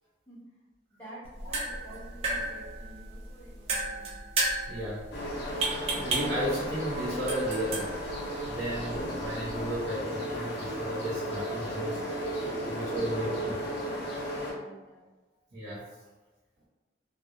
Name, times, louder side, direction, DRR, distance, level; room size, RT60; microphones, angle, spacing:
voice 1, 0.3-0.6 0.9-4.1 13.3-15.1, right 1 dB, 10° left, -10 dB, 0.9 m, -50 dB
sound 1, 1.2-9.9, right 2 dB, 35° right, 0.4 m, -35 dB
voice 2, 4.7-5.1 5.9-7.9 8.5-12.0 12.6-13.8 15.5-15.9, right 1 dB, 80° right, -10 dB, 0.8 m, -34 dB
sound 2, 5.1-14.5, equal, 60° left, 0.6 m, -34 dB
2.2 x 2.0 x 2.8 m, 1.2 s
head